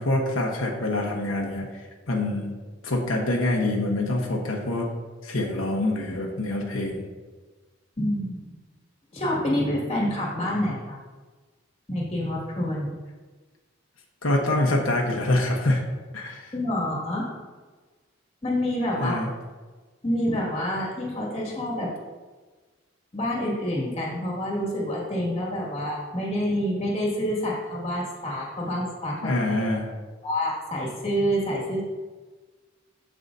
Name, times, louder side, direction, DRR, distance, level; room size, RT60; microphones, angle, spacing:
voice 1, 0.0-2.6 2.8-4.9 5.2-7.0 14.2-15.8 16.1-16.5 19.0-19.3 29.2-29.9, left 1 dB, 85° left, -1 dB, 1.1 m, -25 dB
voice 2, 8.0-8.4 9.1-11.0 11.9-12.9 16.5-17.3 18.4-19.2 20.0-21.9 23.1-29.3 30.2-31.8, equal, 30° left, -4 dB, 2.0 m, -27 dB
14.0 x 4.8 x 2.7 m, 1.3 s
head